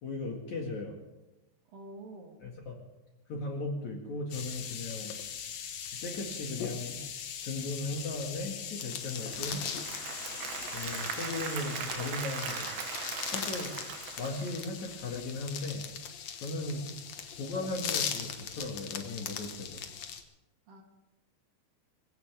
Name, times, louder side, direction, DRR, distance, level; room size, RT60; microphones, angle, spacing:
voice 1, 0.0-1.0 2.4-2.8 3.3-5.1 6.0-7.0 7.4-9.6 10.7-12.7 13.3-13.8 14.2-15.8 16.4-16.9 17.4-19.8, left 2 dB, 50° left, 0 dB, 2.8 m, -37 dB
voice 2, 1.7-2.4 20.7-20.8, right 2 dB, 55° right, 1 dB, 3.3 m, -47 dB
sound 1, 4.3-20.2, left 8 dB, 85° left, 1.5 m, -39 dB
Applause / Crowd, 9.0-15.1, right 7 dB, 75° right, 3.7 m, -39 dB
25.0 x 16.5 x 3.5 m, 1.0 s
omnidirectional pair, 5.1 m